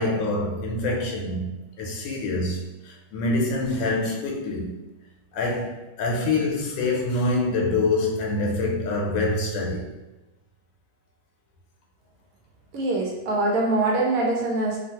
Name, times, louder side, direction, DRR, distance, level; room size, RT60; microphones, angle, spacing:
voice 1, 0.0-1.5 1.8-4.7 5.3-9.9, left 2 dB, 85° left, 1.3 m, -25 dB
voice 2, 12.7-14.8, right 2 dB, 65° right, 0.9 m, -23 dB
3.0 x 2.3 x 2.8 m
omnidirectional pair, 1.9 m